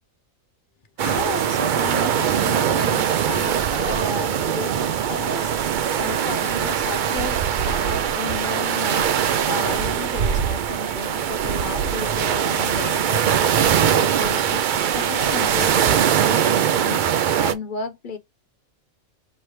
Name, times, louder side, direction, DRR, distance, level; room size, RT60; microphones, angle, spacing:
voice 1, 1.0-5.7 6.0-18.2, left 4 dB, 45° left, 0.8 m, -33 dB
sound 1, 1.0-17.5, right 8 dB, 80° right, 0.4 m, -21 dB
4.5 x 3.2 x 3.1 m
omnidirectional pair, 1.4 m